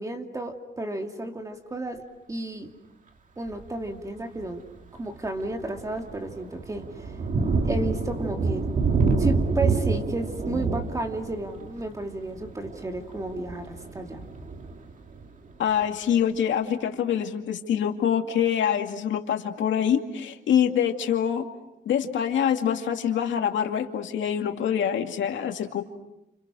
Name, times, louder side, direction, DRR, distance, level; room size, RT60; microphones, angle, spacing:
voice 1, 0.0-2.0 2.3-2.7 3.4-4.6 4.9-7.1 7.6-8.7 9.2-14.2, right 2 dB, 15° right, 4 dB, 2.4 m, -32 dB
Thunder, 3.5-3.8 4.4-4.5 5.0-15.5, right 4 dB, 45° right, 2.1 m, -28 dB
voice 2, 15.6-21.4 21.9-25.8, left 9 dB, 90° left, 4 dB, 2.4 m, -25 dB
30.0 x 29.5 x 6.3 m, 0.91 s
wide cardioid pair, 160°, 19 cm